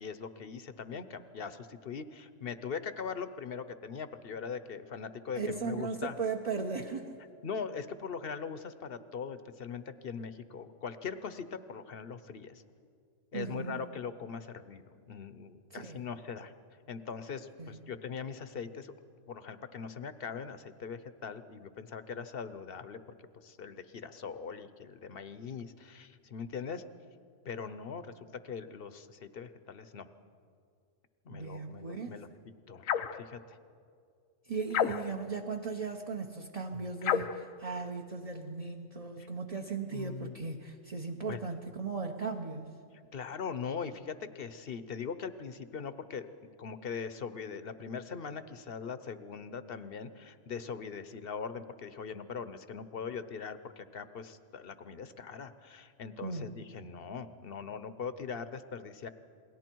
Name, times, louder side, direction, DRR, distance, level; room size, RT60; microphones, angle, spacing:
voice 1, 0.0-6.2 7.4-12.6 13.3-16.5 16.9-18.9 19.3-26.8 27.4-28.1 28.4-30.1 31.2-32.3 32.7-32.8 33.1-33.6 36.7-36.8 39.2-39.3 39.9-40.4 41.3-41.4 43.1-46.3 46.6-59.1, left 6 dB, 50° left, 12 dB, 0.9 m, -41 dB
voice 2, 5.3-7.1 13.3-13.8 15.7-16.0 17.6-17.8 31.3-32.2 34.5-42.7 56.2-56.5, right 4 dB, 30° right, 1 dB, 0.9 m, -37 dB
sound 1, 32.8-33.2 34.7-35.3 37.0-37.4, left 8 dB, 80° left, 1.1 m, -30 dB
28.5 x 20.5 x 4.6 m, 2.3 s
omnidirectional pair, 1.4 m